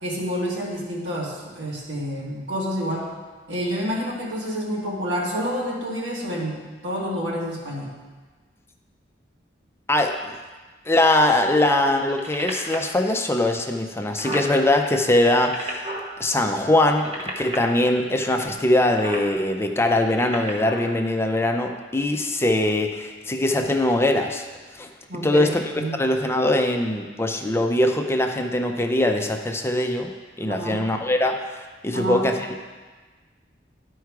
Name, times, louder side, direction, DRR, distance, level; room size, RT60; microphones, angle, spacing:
voice 1, 0.0-3.1 3.5-7.9 25.1-25.9 30.5-30.8 31.9-32.3, equal, 80° right, -4 dB, 2.0 m, -28 dB
voice 2, 9.9-10.4 10.9-15.9 16.2-24.5 24.8-24.9 25.2-25.6 26.0-30.1 30.4-32.6, left 1 dB, 15° left, 3 dB, 0.5 m, -22 dB
sound 1, 12.1-12.9 13.6-13.7 13.9-14.5 15.2-16.1 16.8-17.6 18.8-19.3 20.0-20.9 21.6-21.7, right 1 dB, 35° right, 1.2 m, -32 dB
11.5 x 4.6 x 4.7 m, 1.4 s
head